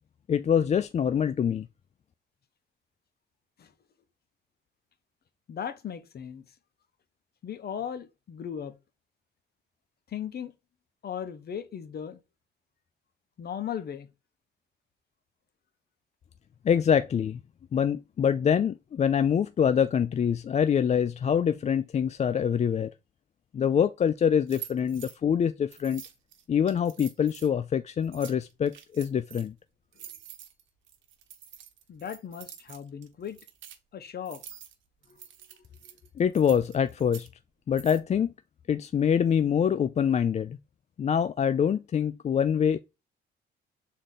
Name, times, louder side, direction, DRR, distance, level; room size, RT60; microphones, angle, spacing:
voice 1, 0.3-1.7 16.6-17.4 17.7-22.9 23.5-26.0 26.5-29.5 36.2-37.3 37.7-38.3 38.7-40.6 41.0-42.8, left 8 dB, 35° left, 0.4 m, -25 dB
voice 2, 5.5-6.4 7.4-8.7 10.1-10.5 11.0-12.2 13.4-14.1 31.9-33.4 33.9-34.4 35.1-35.2, left 8 dB, 50° left, 1.0 m, -37 dB
sound 1, 24.5-25.2 25.7-27.5 28.0-29.5 29.9-33.8 34.2-34.7 35.0-37.3 37.8-38.0, right 10 dB, 75° right, 1.1 m, -47 dB
6.5 x 3.8 x 3.9 m
cardioid pair, 90°, 20 cm